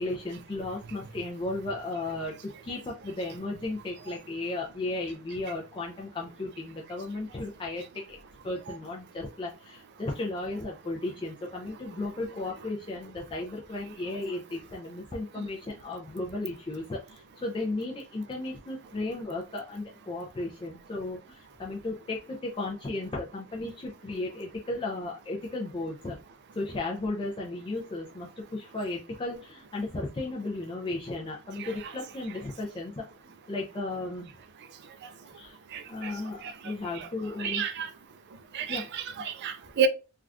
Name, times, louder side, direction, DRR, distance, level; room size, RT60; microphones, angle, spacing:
voice 1, 0.0-8.2 8.4-26.2 26.5-33.0 33.5-34.3 35.3-35.6 35.9-37.7 38.7-38.9, left 2 dB, 25° left, 0.3 m, -35 dB
voice 2, 35.7-36.1 37.0-37.1 37.4-37.9 38.5-39.9, right 7 dB, 50° right, 0.3 m, -30 dB
3.3 x 2.3 x 2.4 m
head